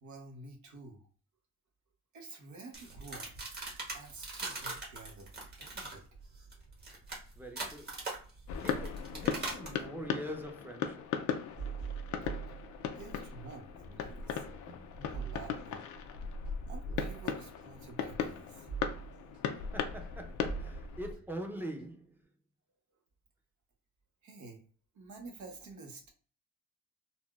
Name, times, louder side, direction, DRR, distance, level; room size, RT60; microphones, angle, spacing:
voice 1, 0.0-1.1 2.1-3.3 3.9-6.0 12.9-14.4 14.9-15.8 16.7-18.7 24.2-24.6 24.9-26.1, right 3 dB, 75° right, 0.9 m, -50 dB
sound 1, 2.7-9.8, right 2 dB, 35° right, 1.2 m, -42 dB
voice 2, 7.4-7.9 8.6-11.1 19.7-22.2, right 1 dB, 5° right, 0.6 m, -43 dB
sound 2, 8.5-21.2, left 7 dB, 85° left, 0.5 m, -38 dB
sound 3, 11.6-13.3 13.6-22.2, right 7 dB, 55° right, 1.6 m, -45 dB
4.0 x 2.1 x 2.3 m
cardioid pair, 100°, 29 cm